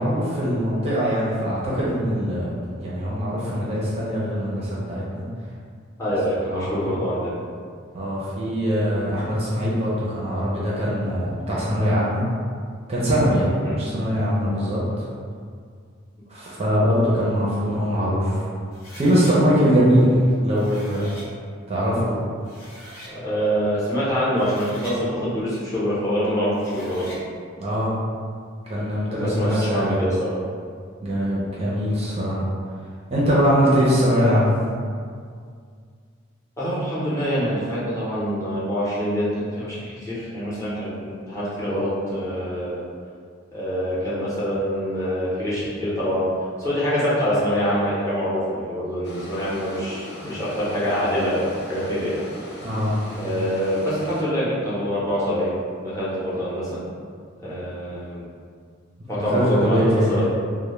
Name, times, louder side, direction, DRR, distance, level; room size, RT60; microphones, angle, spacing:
voice 1, 0.0-5.2 6.5-6.9 7.9-12.2 12.9-14.8 16.3-18.4 18.9-20.1 20.4-21.0 21.7-22.1 27.6-27.9 28.7-30.0 31.0-32.4 33.1-34.5 52.6-53.0 59.2-60.1, equal, 30° right, -7 dB, 0.4 m, -22 dB
voice 2, 6.0-7.4 13.6-13.8 23.1-27.1 29.1-30.4 36.6-42.8 43.5-46.3 46.6-52.2 53.1-56.8 57.4-58.2 59.1-60.2, equal, 15° left, -10 dB, 0.6 m, -25 dB
sound 1, 18.7-19.3 20.4-21.3 22.1-22.2 22.4-23.1 24.2-25.0 26.5-27.2, equal, 85° left, 0.7 m, -42 dB
sound 2, 49.0-54.2, left 1 dB, 55° left, 0.4 m, -39 dB
2.1 x 2.0 x 3.0 m, 2.1 s
head